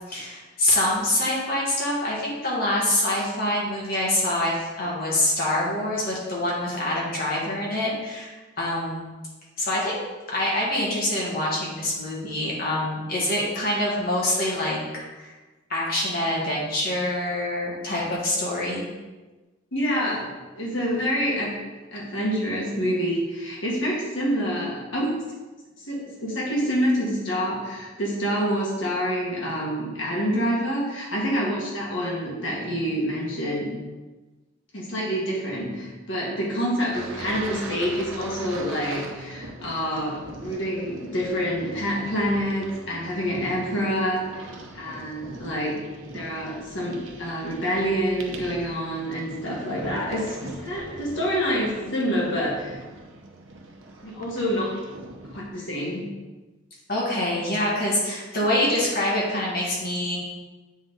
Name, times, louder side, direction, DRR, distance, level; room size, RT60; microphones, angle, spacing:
voice 1, 0.1-9.0 9.6-10.0 10.3-14.8 15.1-15.3 15.7-18.8 56.9-60.2, left 1 dB, 50° left, -5 dB, 1.7 m, -25 dB
voice 2, 19.7-21.5 21.9-25.1 25.8-33.7 34.7-44.5 44.7-45.8 46.1-52.8 54.0-54.7 55.3-56.1, equal, 75° left, -4 dB, 1.7 m, -27 dB
sound 1, 36.9-55.5, right 2 dB, 80° right, 0.8 m, -41 dB
8.1 x 3.9 x 3.9 m, 1.2 s
head